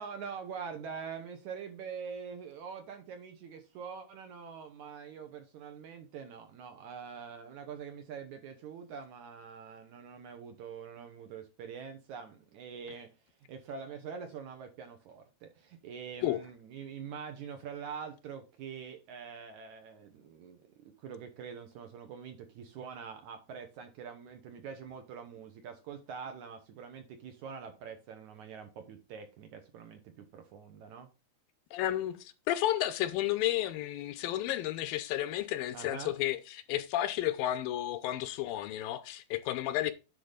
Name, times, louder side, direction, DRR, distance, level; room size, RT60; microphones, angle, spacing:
voice 1, 0.0-13.1 13.5-31.1 35.7-36.1, right 6 dB, 70° right, 2.0 m, -44 dB
voice 2, 31.7-39.9, left 13 dB, 80° left, 2.3 m, -32 dB
10.5 x 3.9 x 5.0 m
omnidirectional pair, 4.2 m